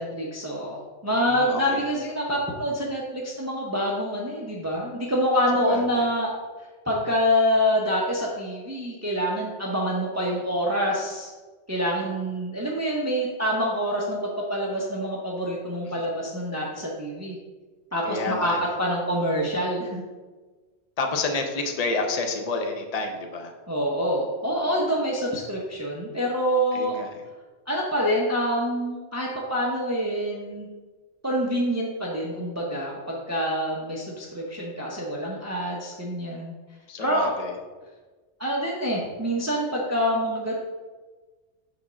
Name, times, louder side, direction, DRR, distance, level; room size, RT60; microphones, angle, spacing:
voice 1, 0.0-6.3 6.9-11.3 11.7-17.4 17.9-18.5 18.8-20.0 23.7-27.0 27.7-30.7 31.2-36.5 37.0-37.3 38.4-40.6, equal, 15° right, -3 dB, 0.8 m, -26 dB
voice 2, 1.1-1.8 5.7-6.0 15.8-15.9 18.1-18.7 21.0-23.5 26.7-27.1 36.9-37.6, left 3 dB, 35° left, 3 dB, 0.8 m, -29 dB
6.1 x 3.6 x 6.1 m, 1.3 s
omnidirectional pair, 1.2 m